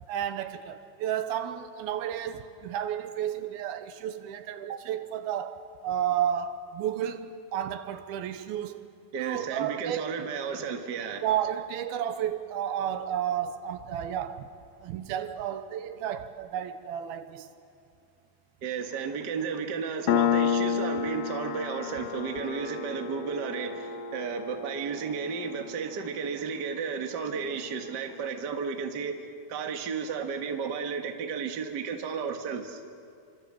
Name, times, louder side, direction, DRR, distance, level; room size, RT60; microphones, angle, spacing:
voice 1, 0.1-8.9 9.2-10.1 11.2-14.5 14.8-17.5, right 10 dB, 80° right, 2.8 m, -32 dB
voice 2, 9.1-11.2 18.6-29.2 29.5-32.8, right 6 dB, 45° right, 1.4 m, -33 dB
Piano, 20.1-27.2, left 7 dB, 75° left, 2.7 m, -31 dB
27.5 x 25.5 x 7.6 m
omnidirectional pair, 4.4 m